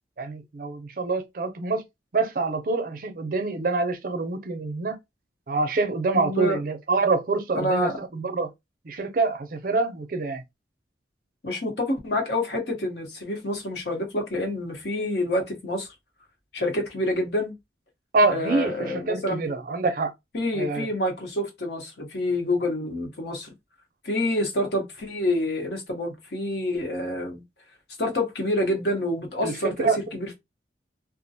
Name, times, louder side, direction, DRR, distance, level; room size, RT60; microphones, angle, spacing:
voice 1, 0.2-1.8 2.1-5.0 5.5-8.5 8.8-10.4 18.1-20.1 20.5-20.9 29.4-30.0, right 3 dB, 50° right, 0.5 m, -26 dB
voice 2, 6.1-6.6 7.5-8.0 11.4-15.9 16.5-17.5 18.3-19.4 20.3-23.5 24.0-27.4 28.0-30.3, left 1 dB, 65° left, 0.9 m, -27 dB
2.4 x 2.1 x 2.7 m
head